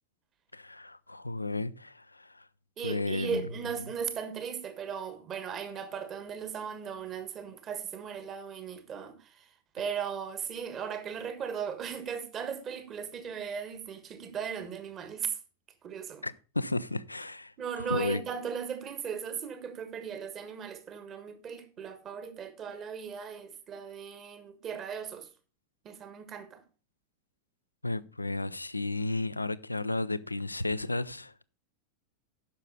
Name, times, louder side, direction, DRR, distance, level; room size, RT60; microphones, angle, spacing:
voice 1, 0.5-2.4 2.8-3.4 16.2-18.2 27.8-31.3, left 2 dB, 85° left, 0.4 m, -33 dB
voice 2, 2.8-9.5 9.7-15.4 15.8-16.3 17.6-25.3 25.8-26.6, right 7 dB, 30° right, 1.5 m, -37 dB
9.8 x 6.5 x 5.4 m
figure-of-eight pair, 90°, 0 cm